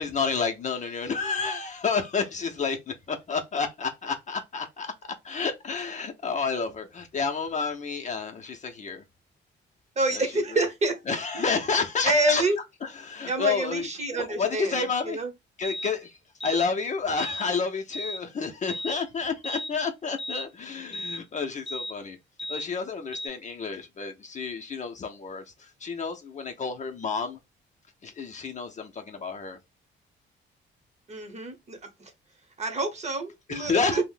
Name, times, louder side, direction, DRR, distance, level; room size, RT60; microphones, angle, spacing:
voice 1, 0.0-9.0 10.1-10.2 11.1-12.4 13.0-15.2 15.6-16.2 16.4-22.2 22.5-27.4 28.0-29.6 33.5-34.0, left 5 dB, 35° left, 0.6 m, -30 dB
voice 2, 10.0-10.9 11.3-11.4 12.0-12.6 13.3-15.3 31.1-31.8 32.6-34.0, right 2 dB, 35° right, 0.9 m, -27 dB
sound 1, 15.6-15.9 16.4-16.7 17.2-17.5 17.9-18.2 18.7-19.0 19.4-19.7 20.2-20.5 20.9-21.2 21.7-21.9 22.4-22.7 23.1-23.3, left 1 dB, ahead, 0.7 m, -35 dB
2.5 x 2.0 x 3.7 m
cardioid pair, 90°, 20 cm